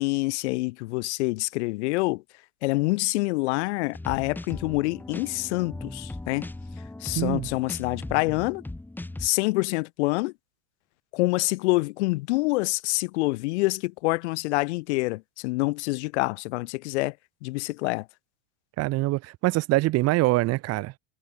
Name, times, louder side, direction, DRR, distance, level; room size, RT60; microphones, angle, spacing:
voice 1, 0.0-2.2 2.6-6.5 7.0-8.6 9.2-10.3 11.1-17.1 17.4-18.0, left 23 dB, 75° left, 3.3 m, -26 dB
sound 1, 3.9-9.3, left 2 dB, 5° left, 5.0 m, -38 dB
voice 2, 7.1-7.5 18.8-20.9, right 19 dB, 45° right, 3.6 m, -24 dB
supercardioid pair, 150°, 34 cm